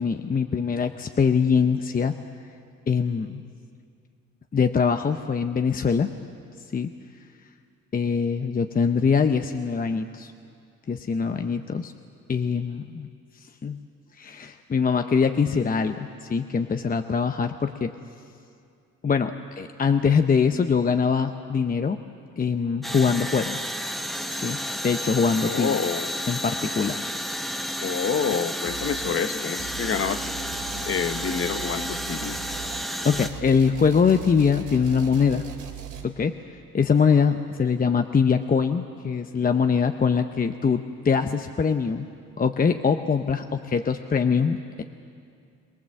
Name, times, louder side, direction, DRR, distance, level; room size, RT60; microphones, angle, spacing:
voice 1, 0.0-2.1 2.9-3.4 4.5-6.1 6.7-6.9 7.9-10.3 10.9-11.9 12.3-13.1 13.6-13.8 14.2-17.9 19.0-22.0 22.4-23.6 24.3-24.6 24.8-25.8 26.3-27.0 33.0-35.4 36.0-36.3 36.7-42.1 42.4-44.8, left 6 dB, 30° left, 7 dB, 0.8 m, -23 dB
sound 1, 22.8-33.3, equal, ahead, 0.9 m, -31 dB
voice 2, 25.4-26.2 27.8-30.3 30.7-32.4, left 6 dB, 45° left, 10 dB, 1.1 m, -28 dB
sound 2, 28.7-29.2 29.6-36.0, right 10 dB, 85° right, 2.6 m, -39 dB
23.0 x 19.0 x 7.7 m, 2.4 s
cardioid pair, 90°, 30 cm